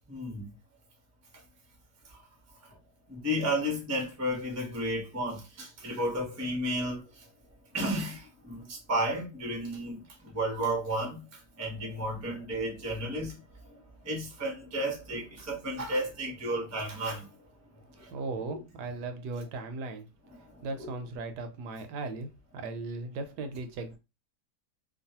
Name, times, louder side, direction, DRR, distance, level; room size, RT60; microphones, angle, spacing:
voice 1, 0.1-0.6 2.0-2.2 2.7-2.8 3.1-7.3 7.7-17.3 17.9-18.2 18.5-18.6 20.3-21.0, right 1 dB, 20° right, 0.4 m, -33 dB
voice 2, 18.1-20.1 20.6-24.0, right 3 dB, 75° right, 1.1 m, -37 dB
3.0 x 2.3 x 2.8 m
omnidirectional pair, 1.8 m